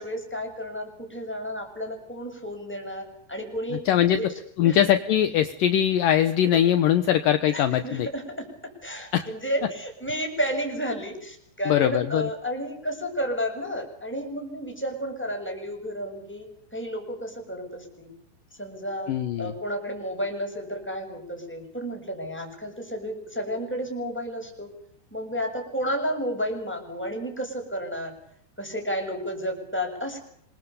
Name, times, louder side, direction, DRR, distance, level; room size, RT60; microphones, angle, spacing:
voice 1, 0.0-4.3 4.6-4.8 7.5-18.1 18.6-24.7 25.1-28.1 28.6-30.2, equal, ahead, 2 dB, 6.8 m, -32 dB
voice 2, 3.9-4.2 4.6-8.1 9.1-9.3 11.7-12.3 19.1-19.5, left 10 dB, 70° left, 10 dB, 2.2 m, -21 dB
26.5 x 22.5 x 7.0 m, 0.67 s
omnidirectional pair, 5.2 m